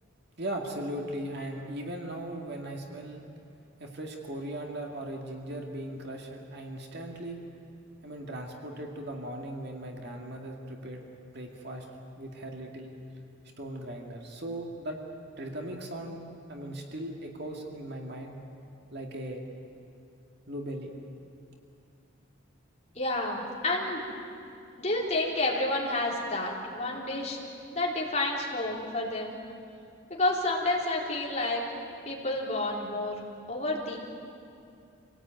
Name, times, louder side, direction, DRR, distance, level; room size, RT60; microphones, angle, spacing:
voice 1, 0.4-3.2 3.8-7.4 8.0-11.9 12.2-13.0 13.6-15.0 15.4-16.2 16.5-18.4 18.9-19.4 20.5-20.9, right 1 dB, 55° right, 1 dB, 2.3 m, -38 dB
voice 2, 23.0-24.1 24.8-27.4 27.7-29.4 30.1-31.6 32.1-33.2 33.5-34.0, left 2 dB, 35° left, -3 dB, 3.9 m, -30 dB
26.5 x 17.5 x 9.2 m, 2.5 s
head